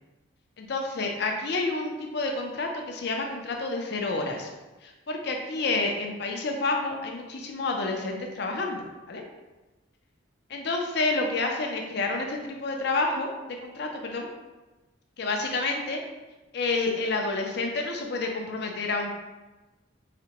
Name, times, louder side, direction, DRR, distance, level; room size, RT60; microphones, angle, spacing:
voice 1, 0.6-4.5 4.8-9.2 10.5-13.3 13.6-14.3 15.2-16.0 16.5-19.1, left 3 dB, 55° left, 2 dB, 0.5 m, -29 dB
4.9 x 2.2 x 2.8 m, 1.1 s
head